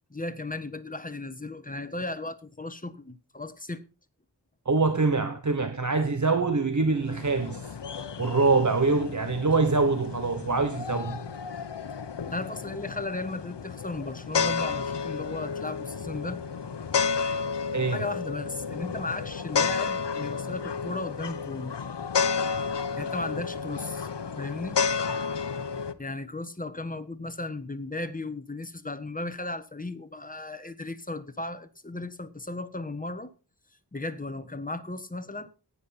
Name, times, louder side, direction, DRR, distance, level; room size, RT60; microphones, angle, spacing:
voice 1, 0.1-3.9 12.2-16.4 17.9-21.7 23.0-24.1 24.4-24.8 26.0-33.3 33.9-35.5, left 2 dB, 20° left, 1.3 m, -35 dB
voice 2, 4.7-7.8 8.2-11.2 17.7-18.0, right 3 dB, 45° right, 1.1 m, -24 dB
sound 1, 6.9-25.9, left 5 dB, 85° left, 1.0 m, -31 dB
14.5 x 9.9 x 4.2 m
wide cardioid pair, 65°, 41 cm